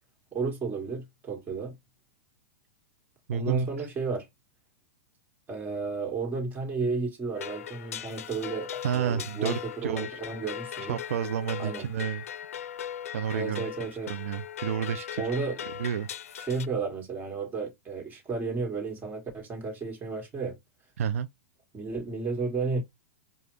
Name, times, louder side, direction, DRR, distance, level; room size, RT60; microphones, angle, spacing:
voice 1, 0.3-1.7 3.3-4.3 5.5-9.6 9.8-11.0 11.6-11.9 13.3-14.1 15.2-15.6 16.5-20.6 21.7-22.8, right 4 dB, 25° right, 1.8 m, -32 dB
voice 2, 3.3-3.9 8.8-10.2 10.8-12.2 13.1-15.3 15.6-16.1 21.0-21.3, right 8 dB, 75° right, 0.4 m, -31 dB
sound 1, 7.4-16.7, left 10 dB, 80° left, 0.4 m, -39 dB
4.9 x 2.4 x 3.2 m
hypercardioid pair, 120°, 8 cm